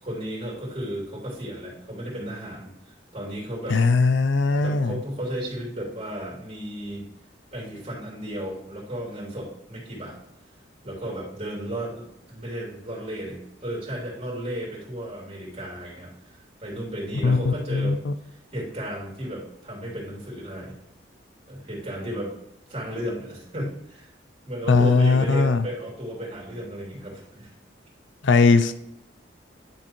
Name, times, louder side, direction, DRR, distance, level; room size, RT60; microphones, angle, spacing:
voice 1, 0.0-3.8 4.6-7.1 7.5-10.2 10.8-18.0 18.5-20.7 21.5-22.3 22.7-24.1 24.5-27.5, right 1 dB, 35° right, -4 dB, 3.0 m, -34 dB
voice 2, 3.7-5.0 17.2-18.1 24.7-25.6 28.2-28.7, left 4 dB, 75° left, 10 dB, 0.6 m, -19 dB
9.9 x 3.7 x 4.5 m, 0.80 s
head